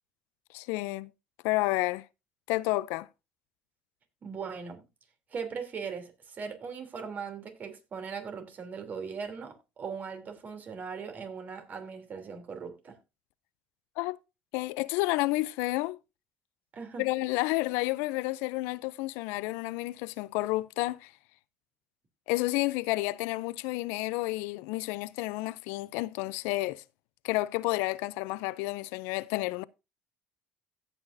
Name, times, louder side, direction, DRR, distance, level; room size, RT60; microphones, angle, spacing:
voice 1, 0.5-1.1 1.4-2.1 2.5-3.1 14.0-14.2 14.5-16.0 17.0-21.1 22.3-26.8 27.2-29.6, left 20 dB, 85° left, 0.4 m, -30 dB
voice 2, 4.2-4.8 5.3-13.0 16.7-17.0, right 6 dB, 45° right, 3.0 m, -39 dB
16.5 x 6.1 x 2.6 m
supercardioid pair, 80°, 4 cm